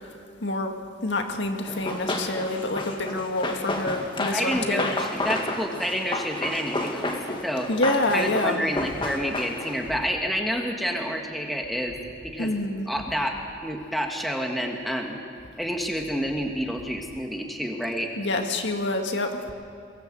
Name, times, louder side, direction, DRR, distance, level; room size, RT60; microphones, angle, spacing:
voice 1, 0.4-0.7 1.0-4.9 7.7-8.6 12.4-12.9 18.2-19.4, left 2 dB, 70° left, 4 dB, 1.9 m, -27 dB
Run, 1.7-9.8, left 2 dB, 25° left, 1.9 m, -31 dB
voice 2, 4.3-7.1 7.4-7.7 8.1-12.0 12.2-12.5 12.9-15.2 15.6-18.1, equal, ahead, 1 dB, 1.6 m, -29 dB
23.0 x 17.0 x 7.8 m, 2.4 s
head